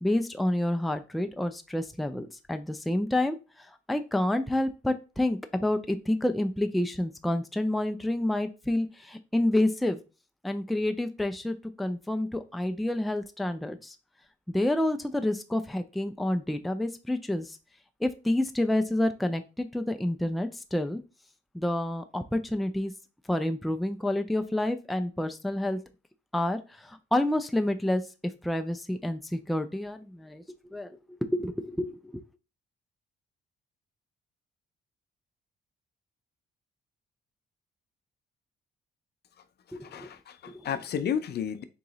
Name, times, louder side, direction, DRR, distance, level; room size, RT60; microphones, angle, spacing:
voice 1, 0.0-10.0 10.4-14.0 14.5-17.6 18.0-21.0 21.5-22.9 23.3-25.8 26.3-28.0 28.4-30.4 30.7-32.2 39.7-40.1 40.5-40.6, left 1 dB, ahead, 8 dB, 0.4 m, -29 dB
voice 2, 39.7-41.6, left 8 dB, 55° left, 12 dB, 0.5 m, -32 dB
3.8 x 2.8 x 3.9 m, 0.31 s
cardioid pair, 90°, 20 cm